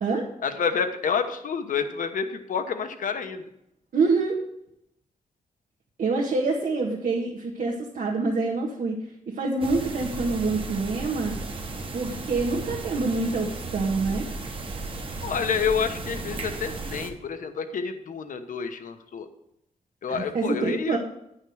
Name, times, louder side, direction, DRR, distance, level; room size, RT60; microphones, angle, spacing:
voice 1, 0.4-3.4 15.2-19.3 20.0-21.0, left 6 dB, 80° left, 8 dB, 1.1 m, -28 dB
voice 2, 3.9-4.4 6.0-9.0 9.3-11.4 11.9-14.3 20.1-21.0, right 3 dB, 90° right, -3 dB, 1.7 m, -26 dB
sound 1, 9.6-17.1, right 3 dB, 40° right, 1.3 m, -35 dB
10.5 x 6.3 x 6.4 m, 0.78 s
wide cardioid pair, 135°, 13 cm